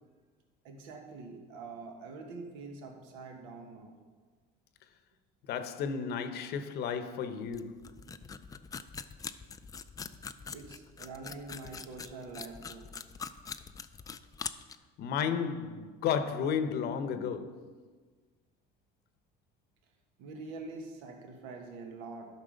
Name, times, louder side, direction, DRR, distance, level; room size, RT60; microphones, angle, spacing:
voice 1, 0.6-3.9 10.5-12.9 20.2-22.3, right 3 dB, 80° right, 1.5 m, -45 dB
voice 2, 5.5-7.9 15.0-17.7, left 7 dB, 55° left, 0.8 m, -33 dB
sound 1, 7.5-14.8, left 6 dB, 20° left, 0.4 m, -43 dB
12.5 x 6.0 x 5.1 m
cardioid pair, 125°, 20 cm